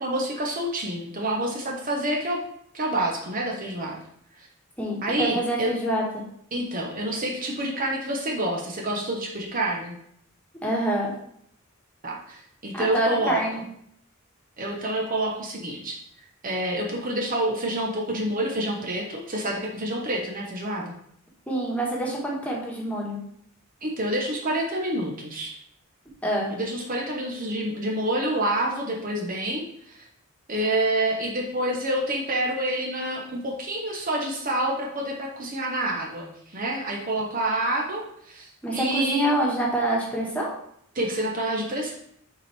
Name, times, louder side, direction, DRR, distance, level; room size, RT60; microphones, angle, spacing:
voice 1, 0.0-2.4 2.7-4.0 4.4-4.5 5.0-5.7 6.5-10.0 12.0-13.6 14.6-16.0 16.4-20.9 23.8-25.6 26.5-30.1 30.5-39.3 40.9-41.9, right 1 dB, 40° right, -1 dB, 0.9 m, -28 dB
voice 2, 4.8-6.0 10.6-11.1 12.7-13.6 21.5-23.2 26.2-26.5 38.6-40.5, right 1 dB, 5° left, -4 dB, 1.4 m, -26 dB
7.1 x 4.4 x 3.4 m, 0.70 s
head